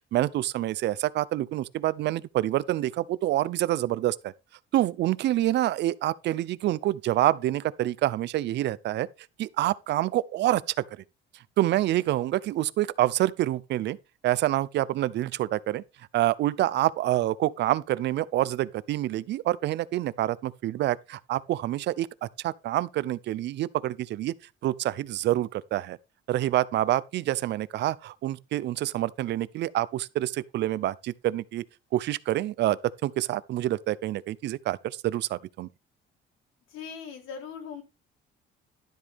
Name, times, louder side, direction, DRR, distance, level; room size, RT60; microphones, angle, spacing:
voice 1, 0.1-4.3 4.7-9.1 9.4-10.6 10.9-11.0 11.6-14.0 14.2-15.8 16.1-24.3 24.6-26.0 26.3-31.6 31.9-35.7, right 14 dB, 60° right, 0.6 m, -27 dB
voice 2, 36.7-37.8, left 6 dB, 80° left, 3.5 m, -39 dB
12.0 x 8.0 x 3.5 m
cardioid pair, 155°, 20 cm